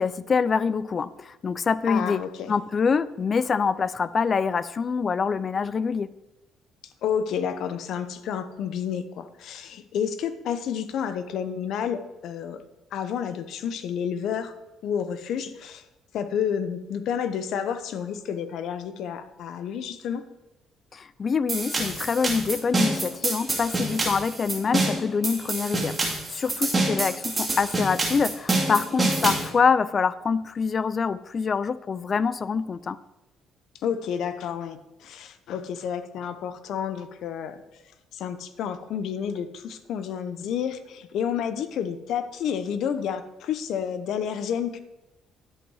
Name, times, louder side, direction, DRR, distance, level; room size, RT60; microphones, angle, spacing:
voice 1, 0.0-2.2 2.5-6.1 20.9-33.0, left 5 dB, 35° left, 17 dB, 0.4 m, -25 dB
voice 2, 1.8-2.5 7.0-12.6 12.9-14.5 14.8-15.8 16.1-20.2 33.8-37.6 38.1-44.8, left 8 dB, 70° left, 11 dB, 0.8 m, -30 dB
sound 1, 21.5-29.5, right 2 dB, 20° right, 2.7 m, -26 dB
10.5 x 8.1 x 4.8 m, 0.97 s
cardioid pair, 110°, 0 cm